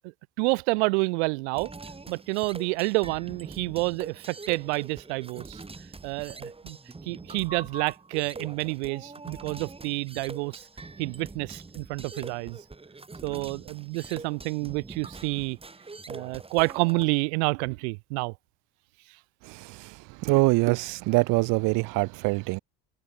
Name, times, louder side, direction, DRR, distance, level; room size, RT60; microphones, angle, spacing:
voice 1, 0.4-1.7 2.1-5.6 6.0-6.8 7.0-10.6 11.0-12.6 13.2-15.6 16.1-18.3 20.2-20.4, right 30 dB, 90° right, 1.9 m, -29 dB
sound 1, 1.5-17.0, right 3 dB, 15° right, 8.0 m, -44 dB
voice 2, 19.4-20.0 20.2-22.6, right 25 dB, 75° right, 1.3 m, -24 dB
supercardioid pair, 100°, 32 cm